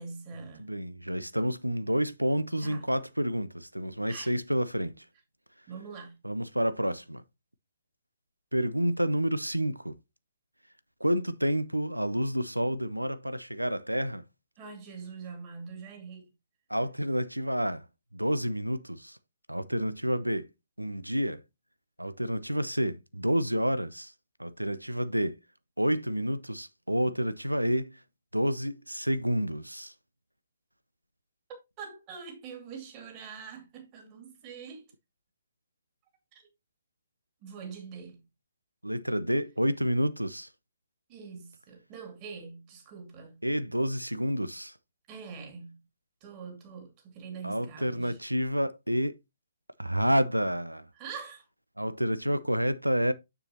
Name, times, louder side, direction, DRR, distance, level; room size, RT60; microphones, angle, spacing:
voice 1, 0.0-0.7 2.6-2.9 4.1-4.3 5.7-6.1 14.6-16.3 31.8-34.9 36.3-36.4 37.4-38.2 41.1-43.4 45.1-45.8 46.2-48.2 50.9-51.5, right 5 dB, 25° right, 2.2 m, -44 dB
voice 2, 0.6-5.0 6.2-7.2 8.5-10.0 11.0-14.2 16.7-17.9 18.1-19.2 19.5-20.5 20.8-21.4 22.0-24.1 24.4-25.4 25.8-28.0 28.3-29.9 38.8-40.5 43.4-44.7 47.4-49.2 49.8-50.9 51.8-53.1, equal, 85° right, 0.6 m, -29 dB
6.9 x 6.8 x 2.8 m
figure-of-eight pair, 130°, 0 cm